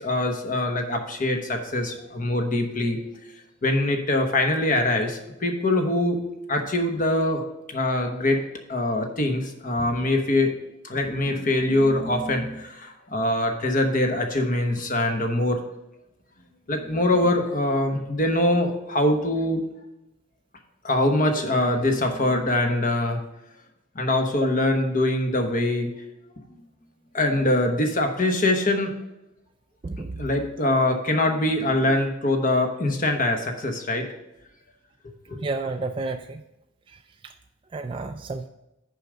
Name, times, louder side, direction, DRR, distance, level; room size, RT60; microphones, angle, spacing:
voice 1, 0.0-3.0 3.6-6.2 6.5-8.4 8.7-10.5 10.8-15.6 16.7-19.7 20.8-23.2 23.9-25.9 27.1-28.9 30.2-34.1 35.3-35.4, left 1 dB, 45° left, 4 dB, 1.2 m, -23 dB
voice 2, 29.8-30.2 35.4-36.4 37.2-37.3 37.7-38.5, right 3 dB, 25° right, 5 dB, 0.3 m, -31 dB
6.8 x 5.1 x 6.8 m, 0.90 s
head